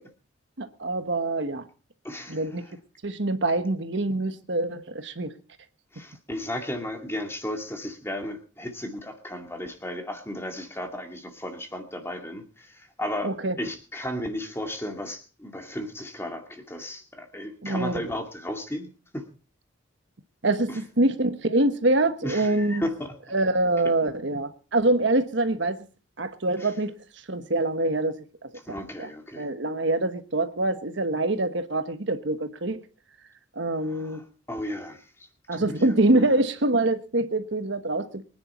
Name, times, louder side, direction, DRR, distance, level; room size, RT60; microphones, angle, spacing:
voice 1, 0.6-1.6 2.3-2.7 3.0-5.3 13.2-13.6 17.6-18.0 20.4-22.8 23.3-25.8 26.2-27.0 27.3-29.1 29.4-32.8 33.5-34.2 35.5-38.2, right 2 dB, 60° right, 1.2 m, -25 dB
voice 2, 2.0-2.7 5.9-19.3 20.7-20.8 22.2-23.0 26.6-26.7 28.6-29.5 33.9-34.2 34.5-36.4, left 1 dB, 10° left, 2.3 m, -35 dB
23.5 x 10.0 x 4.3 m
head